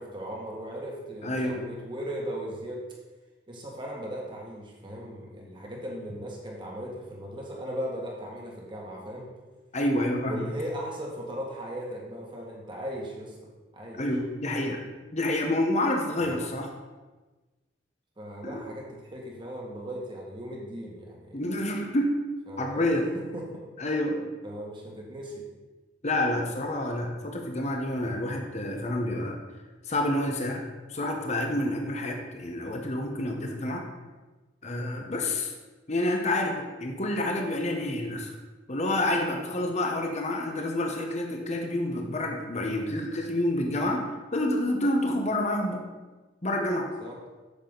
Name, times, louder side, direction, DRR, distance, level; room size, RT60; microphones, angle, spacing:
voice 1, 0.0-2.8 3.5-9.2 10.2-13.3 13.7-14.0 16.2-16.5 18.2-21.4 22.5-23.6 24.4-25.4 47.0-47.2, equal, 25° right, -2 dB, 1.9 m, -37 dB
voice 2, 1.2-1.6 9.7-10.5 14.0-14.8 15.1-16.7 18.4-18.6 21.3-22.1 22.6-23.1 23.8-24.2 26.0-29.4 29.9-30.6 30.9-33.8 34.6-35.5 35.9-38.3 38.7-44.0 44.3-45.8 46.4-46.9, left 1 dB, 40° left, 2 dB, 1.1 m, -28 dB
8.6 x 7.2 x 4.0 m, 1.2 s
head